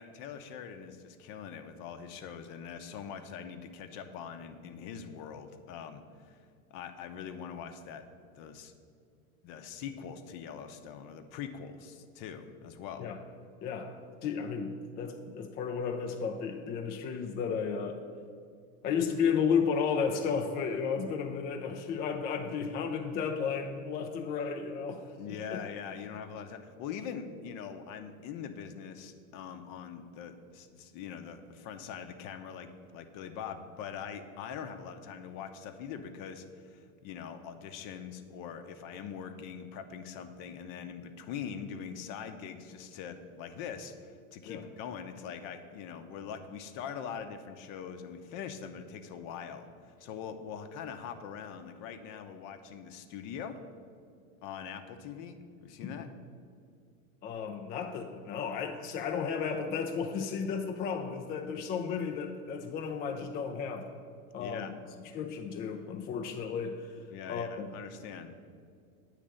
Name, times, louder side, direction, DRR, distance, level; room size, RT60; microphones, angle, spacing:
voice 1, 0.0-6.4 6.7-8.0 8.3-8.7 9.4-13.1 25.2-49.7 50.0-53.6 54.4-56.1 64.4-64.7 67.1-68.3, left 7 dB, 50° left, 7 dB, 0.7 m, -43 dB
voice 2, 13.6-18.0 18.8-25.6 44.5-44.6 55.8-56.1 57.2-63.9 64.3-64.7 65.1-66.9 67.3-67.7, left 6 dB, 25° left, 4 dB, 0.3 m, -33 dB
8.7 x 3.3 x 6.4 m, 2.2 s
supercardioid pair, 110°, 42 cm